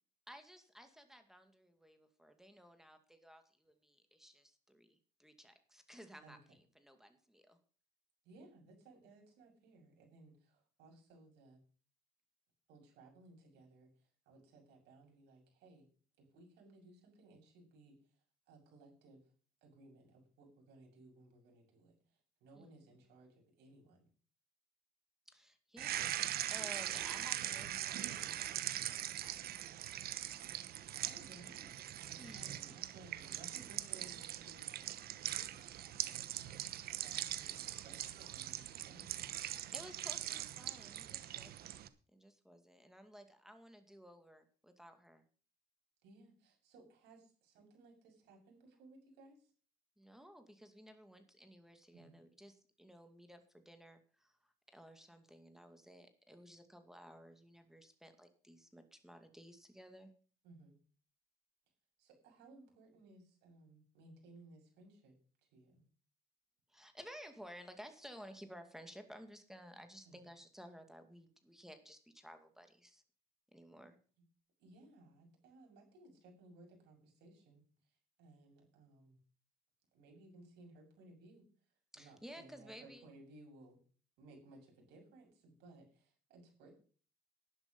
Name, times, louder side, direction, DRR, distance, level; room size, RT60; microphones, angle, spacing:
voice 1, 0.3-7.6 22.6-22.7 25.3-29.7 32.2-32.5 39.5-41.8 42.1-45.2 50.0-54.4 54.7-60.1 66.7-73.0 73.5-74.0 81.9-83.1, equal, ahead, 7 dB, 2.2 m, -56 dB
voice 2, 6.2-6.6 8.2-11.6 12.7-15.9 16.2-19.2 19.6-24.1 30.9-31.7 32.3-39.1 46.0-49.5 51.9-52.1 60.4-60.7 62.0-65.2 65.4-65.8 70.0-70.2 74.6-79.2 79.9-81.4 81.9-83.8 84.2-86.7, right 2 dB, 85° right, 0 dB, 7.2 m, -61 dB
sound 1, 25.8-41.9, right 12 dB, 65° right, 1.1 m, -42 dB
11.5 x 11.0 x 5.4 m, 0.41 s
cardioid pair, 110°, 17 cm